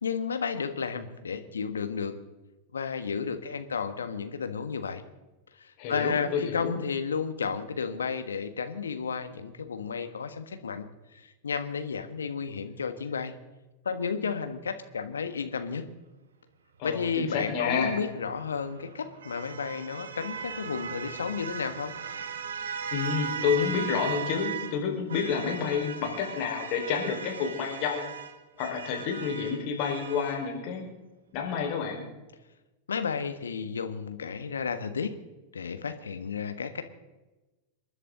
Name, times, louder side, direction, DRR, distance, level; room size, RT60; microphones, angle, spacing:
voice 1, 0.0-2.2 2.7-5.0 5.6-10.8 11.1-13.4 13.8-15.9 16.8-21.9 32.9-35.1 35.5-36.8, left 6 dB, 70° left, 9 dB, 1.3 m, -32 dB
voice 2, 5.8-6.8 16.8-17.9 22.9-28.1 28.6-30.8 31.3-32.1, left 6 dB, 45° left, 1 dB, 4.5 m, -29 dB
sound 1, 18.1-24.8 25.1-30.5, right 7 dB, 65° right, 1.2 m, -38 dB
27.5 x 11.0 x 3.9 m, 1.1 s
figure-of-eight pair, 90°, 0 cm